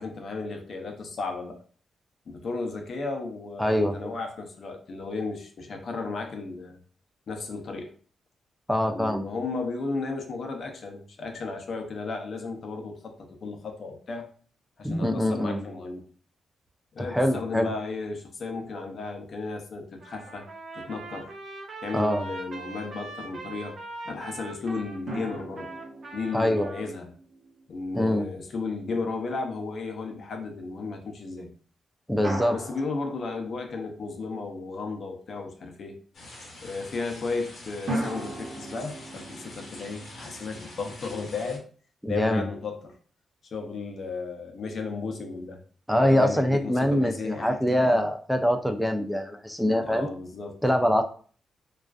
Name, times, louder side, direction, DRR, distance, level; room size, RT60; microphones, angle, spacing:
voice 1, 0.0-1.6 2.3-6.8 7.3-7.9 8.9-14.3 14.8-16.1 16.9-20.5 20.7-21.3 21.8-23.8 24.0-25.7 26.1-27.1 27.7-31.5 32.5-35.9 36.6-41.6 42.1-43.0 43.5-45.6 46.0-48.1 49.8-50.6, left 4 dB, 55° left, 4 dB, 0.5 m, -34 dB
voice 2, 3.6-4.1 8.7-9.2 14.8-15.6 17.0-17.7 21.9-22.2 26.3-26.7 27.9-28.3 32.1-32.6 42.0-42.4 45.9-50.1 50.6-51.0, equal, ahead, 5 dB, 0.3 m, -24 dB
Trumpet, 20.0-26.8, right 3 dB, 50° right, 0.6 m, -41 dB
sound 1, 25.1-28.4 32.2-34.2 37.9-41.0, right 1 dB, 70° right, 1.0 m, -38 dB
sound 2, 36.1-41.6, left 1 dB, 70° left, 0.9 m, -45 dB
2.3 x 2.3 x 2.3 m, 0.43 s
cardioid pair, 115°, 0 cm